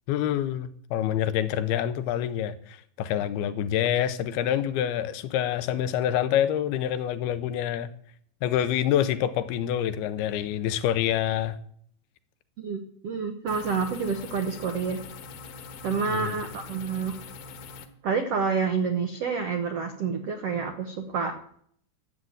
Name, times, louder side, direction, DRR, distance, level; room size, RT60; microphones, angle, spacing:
voice 1, 0.1-7.9 8.4-11.6 16.1-16.4, left 10 dB, 85° left, 2.7 m, -27 dB
voice 2, 12.6-15.0 15.8-17.1 18.0-21.3, right 5 dB, 75° right, 1.4 m, -28 dB
sound 1, 13.5-17.9, left 4 dB, 65° left, 2.5 m, -43 dB
12.5 x 8.6 x 7.9 m
omnidirectional pair, 4.5 m